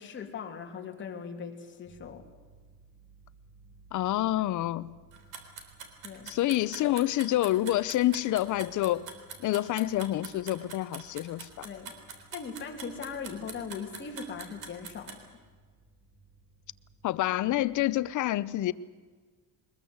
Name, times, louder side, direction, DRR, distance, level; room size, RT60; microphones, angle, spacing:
voice 1, 0.0-2.3 6.0-6.3 11.6-15.3, left 6 dB, 35° left, 2.9 m, -40 dB
sound 1, 1.8-18.1, right 3 dB, 35° right, 6.7 m, -59 dB
voice 2, 3.9-4.9 6.3-9.1 9.4-11.7 17.0-18.7, left 15 dB, 60° left, 0.8 m, -28 dB
sound 2, 5.1-15.2, right 6 dB, 65° right, 3.8 m, -43 dB
22.5 x 21.0 x 8.0 m
cardioid pair, 170°, 33 cm